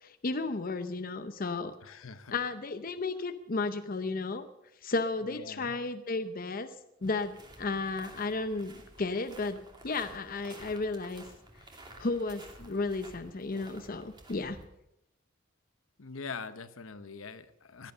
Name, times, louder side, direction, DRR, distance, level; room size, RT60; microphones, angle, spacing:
voice 1, 0.0-2.0 2.3-4.5 4.8-6.7 7.0-9.6 9.8-11.2 12.0-14.6, left 3 dB, 45° left, 9 dB, 0.7 m, -33 dB
voice 2, 1.8-2.3 5.2-5.8 16.0-17.9, left 4 dB, 75° left, 12 dB, 1.0 m, -43 dB
sound 1, 7.0-14.7, right 1 dB, 20° right, 2.5 m, -52 dB
17.5 x 11.5 x 6.7 m, 0.87 s
head